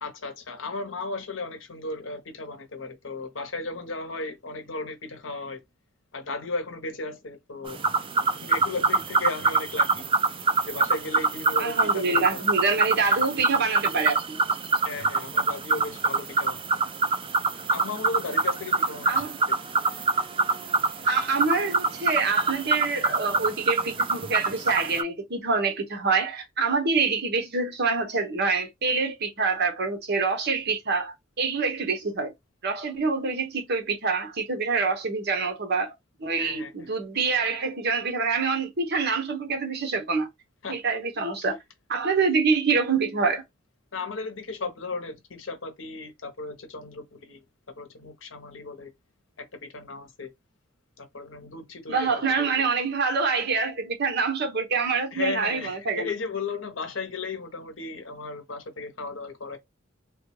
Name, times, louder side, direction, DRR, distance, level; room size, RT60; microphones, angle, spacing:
voice 1, 0.0-5.6 6.1-7.8 8.4-10.0 10.6-12.4 14.8-16.6 17.7-19.6 36.4-36.9 40.6-40.8 43.9-47.4 47.8-48.9 49.4-50.3 51.0-52.7 55.1-59.6, left 3 dB, 70° left, 0.8 m, -35 dB
sound 1, 7.7-25.0, right 4 dB, 25° right, 0.4 m, -25 dB
voice 2, 11.6-14.4 19.1-19.4 21.0-32.3 32.6-35.9 36.2-40.3 40.7-41.6 41.9-43.4 51.9-56.1, right 4 dB, 55° right, 0.9 m, -26 dB
3.2 x 2.3 x 3.1 m
head